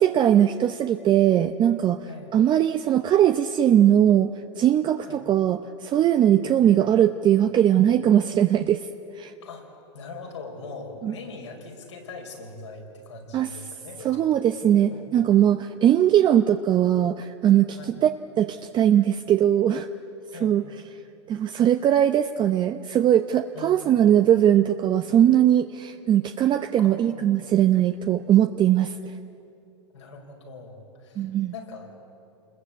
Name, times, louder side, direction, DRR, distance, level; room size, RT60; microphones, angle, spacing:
voice 1, 0.0-8.9 9.2-9.3 11.0-11.1 13.3-13.5 14.0-18.1 18.4-19.9 20.4-20.6 21.3-29.1 31.2-31.5, right 10 dB, 30° right, 8 dB, 0.7 m, -20 dB
voice 2, 6.4-6.8 9.4-9.7 9.9-14.3 14.9-15.4 17.7-17.9 20.3-20.6 23.5-24.0 26.8-27.6 29.9-32.0, left 3 dB, 85° left, 1 dB, 5.1 m, -42 dB
28.0 x 21.0 x 8.4 m, 2.9 s
hypercardioid pair, 100°, 15 cm